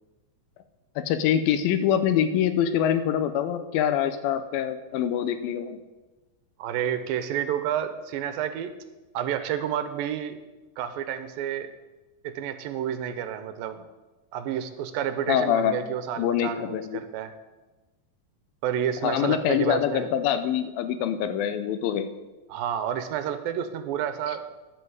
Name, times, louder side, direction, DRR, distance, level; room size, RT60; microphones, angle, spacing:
voice 1, 1.0-5.8 15.3-15.8 16.2-17.0 19.0-22.1, left 9 dB, 80° left, 10 dB, 2.5 m, -25 dB
voice 2, 6.6-8.8 9.1-10.4 10.8-11.7 12.2-13.8 14.3-17.3 18.6-20.1 22.5-24.4, right 9 dB, 80° right, 10 dB, 2.4 m, -30 dB
10.5 x 7.9 x 8.0 m, 1.1 s
omnidirectional pair, 4.3 m